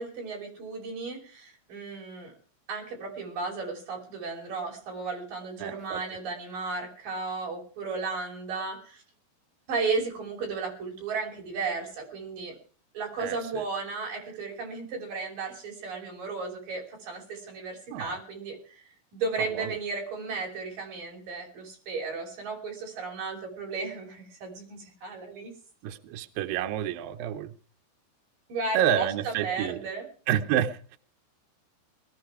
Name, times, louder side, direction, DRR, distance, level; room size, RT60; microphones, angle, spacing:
voice 1, 0.0-2.3 2.7-9.0 9.7-12.6 12.9-18.8 19.1-25.5 28.5-30.1, right 4 dB, 50° right, 1 dB, 6.9 m, -34 dB
voice 2, 5.6-6.0 13.2-13.4 17.9-18.2 19.6-19.7 25.8-27.5 28.7-29.8 30.3-31.0, right 10 dB, 80° right, 8 dB, 2.1 m, -29 dB
21.0 x 13.0 x 4.8 m, 0.43 s
omnidirectional pair, 5.3 m